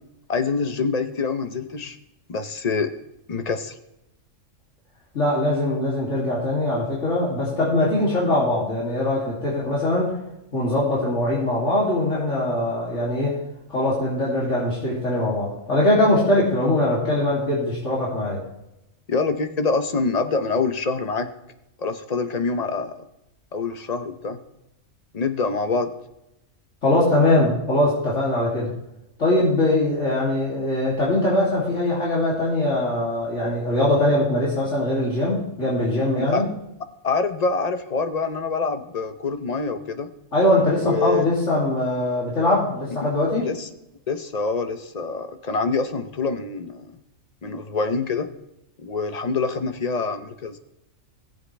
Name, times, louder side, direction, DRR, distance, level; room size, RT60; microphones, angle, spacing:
voice 1, 0.3-2.0 2.3-2.9 3.3-3.7 16.4-16.5 19.1-21.3 21.8-23.1 23.5-24.4 25.1-25.9 36.2-36.4 37.0-40.1 40.8-41.3 43.4-43.7 44.1-47.0 47.4-48.3 48.8-50.6, left 4 dB, 35° left, 9 dB, 0.8 m, -25 dB
voice 2, 5.1-10.2 10.5-13.4 13.7-18.4 26.8-28.7 29.2-36.5 40.3-43.4, left 1 dB, 70° left, -7 dB, 3.2 m, -22 dB
18.0 x 7.7 x 3.3 m, 0.88 s
omnidirectional pair, 1.3 m